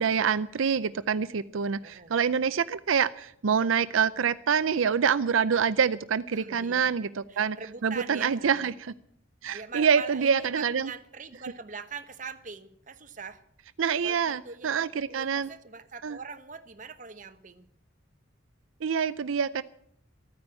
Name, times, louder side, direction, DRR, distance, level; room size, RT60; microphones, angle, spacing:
voice 1, 0.0-7.6 7.8-8.9 9.4-10.9 13.8-15.5 16.0-16.2 18.8-19.6, right 6 dB, 85° right, 14 dB, 0.5 m, -26 dB
voice 2, 6.3-6.9 7.3-8.7 9.5-13.4 14.0-17.7, right 5 dB, 40° right, 9 dB, 1.0 m, -42 dB
14.0 x 9.7 x 8.8 m, 0.67 s
head